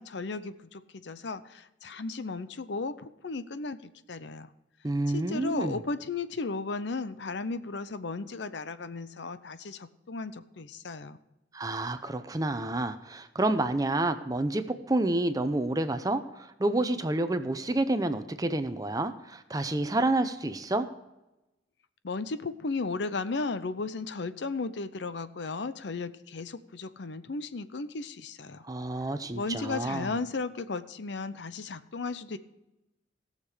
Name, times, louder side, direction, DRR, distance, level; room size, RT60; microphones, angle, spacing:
voice 1, 0.0-4.5 5.1-11.2 22.0-28.6 29.3-32.4, left 3 dB, 70° left, 13 dB, 0.7 m, -35 dB
voice 2, 4.8-5.8 11.5-20.9 28.6-30.1, right 2 dB, 20° right, 10 dB, 0.7 m, -29 dB
17.5 x 6.7 x 5.0 m, 0.96 s
head